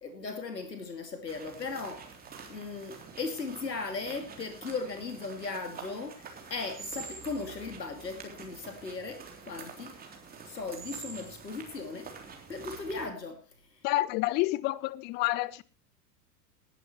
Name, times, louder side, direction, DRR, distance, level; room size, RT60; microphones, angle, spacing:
voice 1, 0.0-2.1 2.4-10.0 10.4-12.1 12.5-13.4, left 4 dB, 75° left, 2.6 m, -37 dB
sound 1, 1.3-13.1, right 5 dB, 20° right, 3.4 m, -47 dB
voice 2, 13.8-15.6, left 18 dB, 20° left, 0.6 m, -29 dB
19.5 x 11.5 x 3.1 m
figure-of-eight pair, 95°, 49 cm